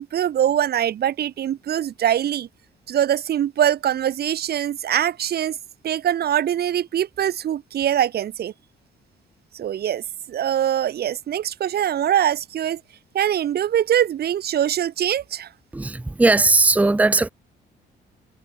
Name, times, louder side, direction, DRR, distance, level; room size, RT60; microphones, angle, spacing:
voice 1, 0.0-2.5 2.9-5.6 5.8-8.5 9.5-12.8 13.1-15.5, right 10 dB, 55° right, 0.6 m, -23 dB
voice 2, 15.7-17.3, right 3 dB, 5° right, 0.6 m, -18 dB
cardioid pair, 90°, 20 cm